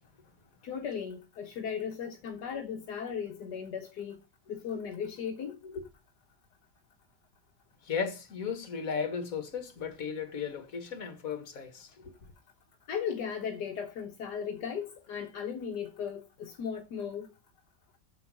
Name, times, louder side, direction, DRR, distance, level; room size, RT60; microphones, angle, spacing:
voice 1, 0.6-4.2 4.5-5.6 12.9-17.3, left 7 dB, 75° left, 1.6 m, -36 dB
voice 2, 7.9-11.9, left 6 dB, 55° left, 2.0 m, -35 dB
8.1 x 7.2 x 5.4 m
omnidirectional pair, 1.8 m